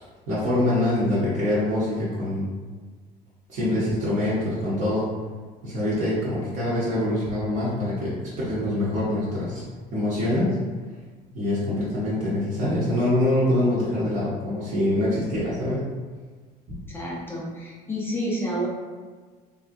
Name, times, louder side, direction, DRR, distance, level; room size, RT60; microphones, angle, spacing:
voice 1, 0.3-2.5 3.5-5.1 5.6-9.6 9.9-10.6 11.3-15.9 16.7-16.8, left 1 dB, 45° right, -9 dB, 0.8 m, -24 dB
voice 2, 16.9-18.7, equal, 15° left, -5 dB, 0.5 m, -29 dB
3.5 x 2.5 x 2.6 m, 1.5 s
cardioid pair, 160°, 17 cm